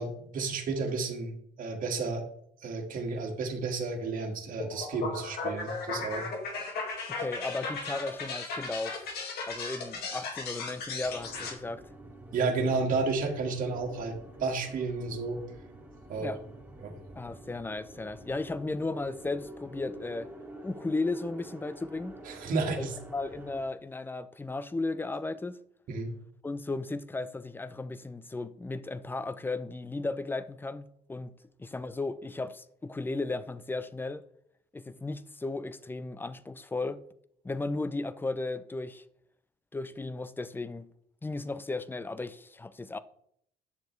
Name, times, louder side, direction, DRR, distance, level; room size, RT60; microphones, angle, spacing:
voice 1, 0.0-2.2 2.6-6.3 12.3-15.4 16.1-16.4 16.8-16.9 22.2-22.9 25.9-26.1, right 4 dB, 55° right, 1.7 m, -32 dB
sound 1, 4.6-11.5, left 3 dB, 70° left, 2.0 m, -36 dB
voice 2, 7.1-9.1 9.5-11.9 16.2-16.4 17.2-20.3 20.6-22.1 22.8-25.6 26.4-31.3 31.6-34.2 34.7-37.0 37.4-39.0 39.7-40.9 41.2-43.0, left 3 dB, 10° left, 0.5 m, -35 dB
sound 2, 11.0-23.6, right 1 dB, 10° right, 1.5 m, -48 dB
9.6 x 6.8 x 3.2 m
cardioid pair, 110°, 17 cm